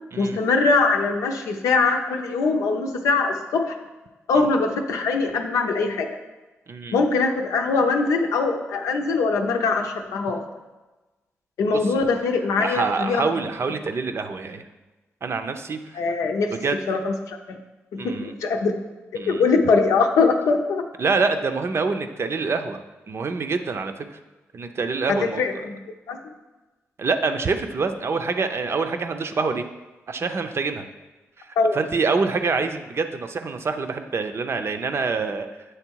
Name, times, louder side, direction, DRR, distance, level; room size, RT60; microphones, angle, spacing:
voice 1, 0.2-3.8 4.3-6.1 6.9-10.4 11.6-13.3 15.9-16.5 16.9-17.6 17.9-18.7 19.1-20.8 25.1-25.8 26.1-26.2 31.6-31.8, left 4 dB, 85° left, 4 dB, 0.6 m, -22 dB
voice 2, 6.7-7.0 12.0-12.1 12.6-14.7 15.2-15.8 16.5-17.0 18.0-18.3 19.1-19.4 21.0-22.8 23.1-24.1 24.5-25.4 27.0-29.6 30.1-30.9 31.4-31.5 31.7-35.5, right 4 dB, 50° right, 7 dB, 0.6 m, -26 dB
7.9 x 3.3 x 4.6 m, 1.2 s
supercardioid pair, 55°, 5 cm